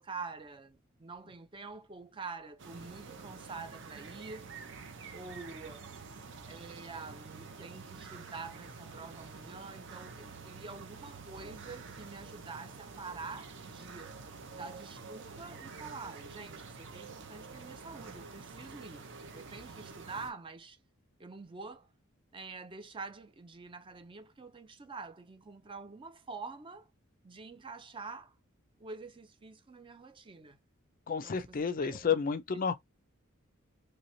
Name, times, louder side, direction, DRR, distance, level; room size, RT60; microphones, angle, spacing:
voice 1, 0.0-4.5 5.1-5.9 6.5-14.1 14.5-19.1 19.3-20.8 21.2-21.9 22.3-26.9 27.2-28.3 28.8-30.6 31.2-32.2, right 4 dB, 25° right, 0.5 m, -46 dB
sound 1, 2.6-20.3, right 4 dB, 60° right, 0.7 m, -48 dB
voice 2, 31.1-32.7, left 6 dB, 40° left, 0.4 m, -31 dB
3.2 x 2.9 x 2.7 m
head